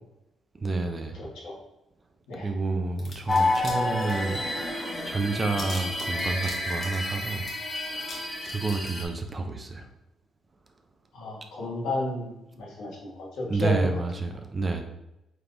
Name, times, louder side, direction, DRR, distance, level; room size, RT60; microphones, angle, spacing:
voice 1, 0.5-1.2 2.3-4.5 5.1-7.5 8.4-9.9 13.4-14.8, right 3 dB, 30° right, 5 dB, 0.6 m, -29 dB
voice 2, 1.2-1.6 2.3-2.5 11.1-13.9, left 2 dB, 85° left, -3 dB, 1.3 m, -32 dB
sound 1, 3.0-3.7 4.0-4.6 4.9-5.0 5.2-8.2 8.4-8.9, left 2 dB, 50° left, 1.1 m, -41 dB
sound 2, 3.3-9.1, left 2 dB, 25° left, 1.2 m, -29 dB
4.4 x 3.5 x 2.5 m, 0.90 s
cardioid pair, 90°, 0 cm